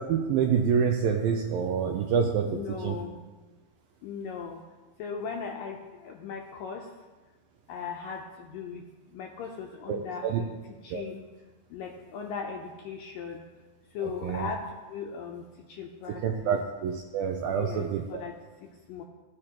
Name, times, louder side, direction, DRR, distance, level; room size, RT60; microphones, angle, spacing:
voice 1, 0.1-3.0 9.9-10.4 10.9-11.0 14.0-14.5 16.2-18.2, right 7 dB, 80° right, 3 dB, 2.1 m, -27 dB
voice 2, 2.4-3.2 4.0-4.6 5.0-6.9 7.7-10.5 10.8-11.2 11.7-13.4 13.9-16.6 17.4-18.3 18.6-19.0, left 6 dB, 80° left, 0 dB, 2.0 m, -38 dB
16.5 x 6.4 x 2.9 m, 1.3 s
omnidirectional pair, 4.7 m